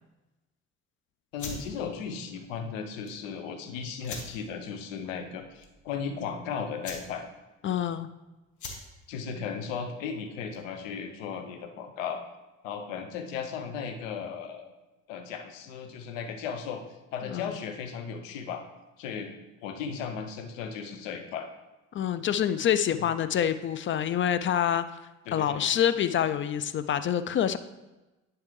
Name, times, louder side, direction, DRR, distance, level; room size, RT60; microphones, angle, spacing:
voice 1, 1.3-7.2 9.1-12.2 12.6-14.7 15.1-16.8 17.1-18.6 19.0-19.3 19.6-21.5 23.0-23.1 25.3-25.7, left 6 dB, 75° left, 6 dB, 0.8 m, -36 dB
sound 1, 1.3-10.8, left 3 dB, 50° left, 1.5 m, -45 dB
voice 2, 7.6-8.1 17.3-17.6 21.9-24.8 25.3-27.6, left 9 dB, 35° left, 12 dB, 0.4 m, -26 dB
10.5 x 4.6 x 3.2 m, 1.1 s
figure-of-eight pair, 50°, 39 cm